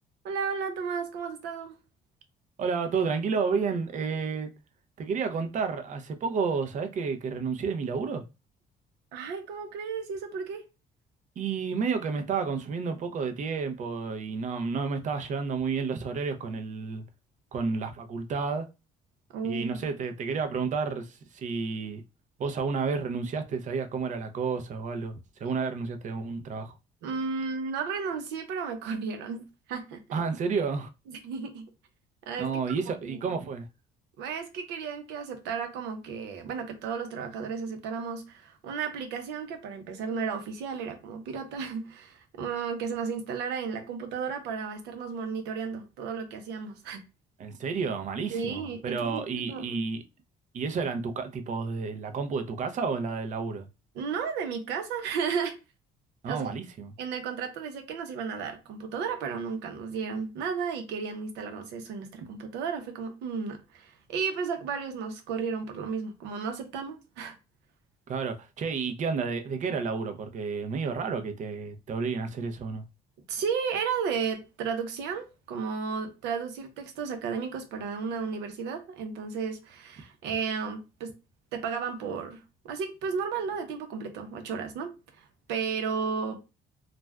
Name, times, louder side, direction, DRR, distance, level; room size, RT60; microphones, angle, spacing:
voice 1, 0.2-1.8 9.1-10.6 19.3-19.8 27.0-30.0 31.1-31.7 32.3-33.4 34.2-47.1 48.3-49.8 53.9-55.6 56.2-56.5 57.0-67.4 73.3-81.1 81.5-86.4, right 6 dB, 90° right, 0.7 m, -33 dB
voice 2, 2.6-4.5 5.0-8.2 11.4-17.0 17.5-18.7 19.4-22.0 22.4-26.7 30.1-30.9 32.4-33.7 47.4-50.0 50.5-53.6 56.2-56.9 68.1-72.8, right 5 dB, 45° right, 0.6 m, -31 dB
2.4 x 2.2 x 3.3 m
cardioid pair, 110°, 17 cm